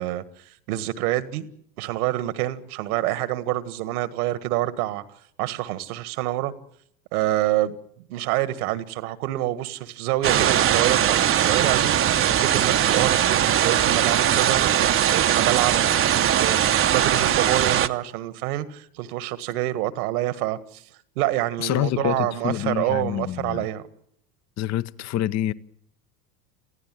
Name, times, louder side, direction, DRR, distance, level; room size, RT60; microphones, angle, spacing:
voice 1, 0.0-1.5 1.8-5.0 5.4-6.5 7.1-7.8 8.1-11.9 12.3-20.8 21.2-23.8, right 15 dB, 65° right, 1.7 m, -27 dB
sound 1, 10.2-17.9, right 10 dB, 25° right, 0.9 m, -20 dB
voice 2, 21.6-23.7 24.6-25.5, left 12 dB, 35° left, 0.9 m, -26 dB
28.0 x 15.5 x 7.6 m
hypercardioid pair, 85°, 48 cm